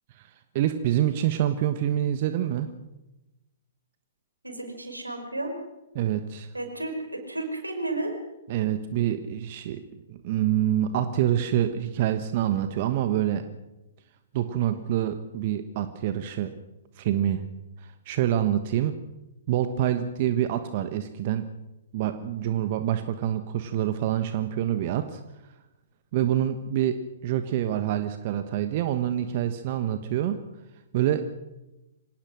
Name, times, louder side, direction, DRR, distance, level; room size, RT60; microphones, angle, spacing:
voice 1, 0.1-2.7 5.9-6.5 8.5-9.8 10.1-13.4 14.3-16.5 17.0-17.4 17.8-19.0 19.5-21.5 21.9-25.2 26.1-30.4 30.9-31.4, right 11 dB, 45° right, 9 dB, 1.3 m, -26 dB
voice 2, 4.4-5.5 6.5-8.1, right 2 dB, 85° right, 5 dB, 5.4 m, -32 dB
25.5 x 18.5 x 6.4 m, 1.0 s
figure-of-eight pair, 115°, 0 cm